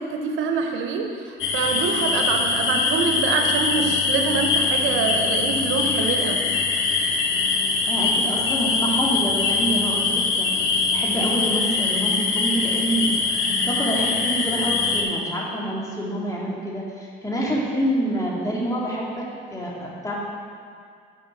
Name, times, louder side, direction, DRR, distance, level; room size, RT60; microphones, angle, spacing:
voice 1, 0.0-6.4, right 5 dB, 90° right, 3 dB, 0.8 m, -25 dB
sound 1, 1.4-15.0, left 4 dB, 85° left, 0.9 m, -23 dB
voice 2, 7.9-10.5 10.9-13.1 13.5-19.3 19.5-20.1, right 1 dB, 15° left, -4 dB, 2.0 m, -27 dB
6.3 x 5.0 x 6.3 m, 2.2 s
cardioid pair, 90°, 20 cm